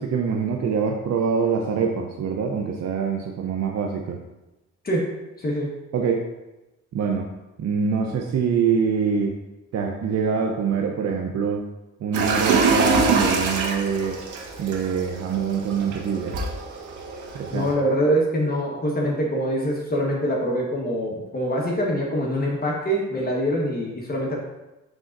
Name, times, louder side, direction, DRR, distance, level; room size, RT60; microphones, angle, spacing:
voice 1, 0.0-4.2 5.9-6.2 6.9-7.3 7.6-9.3 9.7-11.6 12.0-14.2 14.6-16.3 17.3-17.7, right 6 dB, 60° right, 1 dB, 0.7 m, -24 dB
voice 2, 5.4-5.7 17.5-24.4, equal, 30° left, -2 dB, 1.4 m, -24 dB
sound 1, 12.1-17.7, right 4 dB, 90° right, 1.2 m, -24 dB
11.0 x 3.7 x 2.6 m, 1.0 s
cardioid pair, 90°, 30 cm